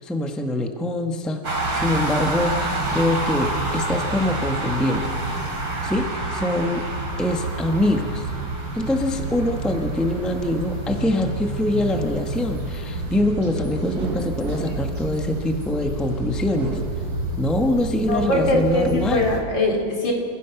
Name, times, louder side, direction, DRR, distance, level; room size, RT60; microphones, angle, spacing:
voice 1, 0.0-5.4 5.8-6.9 7.2-8.3 8.7-16.8 17.4-19.2, left 1 dB, ahead, 4 dB, 1.0 m, -24 dB
sound 1, 1.4-19.4, right 2 dB, 80° right, 3.7 m, -28 dB
sound 2, 13.9-15.9 16.4-17.7 18.2-19.1, right 4 dB, 55° right, 1.9 m, -35 dB
voice 2, 18.1-20.1, left 2 dB, 75° left, 0 dB, 4.1 m, -22 dB
29.0 x 15.5 x 5.9 m, 2.2 s
omnidirectional pair, 2.1 m